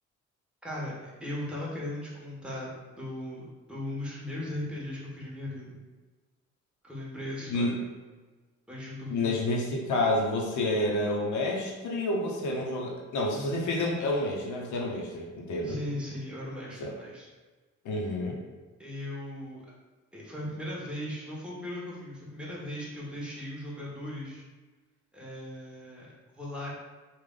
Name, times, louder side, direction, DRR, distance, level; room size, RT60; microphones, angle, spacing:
voice 1, 0.6-5.8 6.8-7.8 8.7-9.3 15.6-17.3 18.8-19.6 20.1-24.4 25.1-26.1 26.3-26.7, left 1 dB, 5° right, -6 dB, 1.2 m, -38 dB
voice 2, 9.1-15.8 16.8-16.9 17.8-18.4, left 1 dB, 75° left, -1 dB, 0.9 m, -29 dB
3.3 x 2.4 x 3.8 m, 1.3 s
cardioid pair, 90°, 30 cm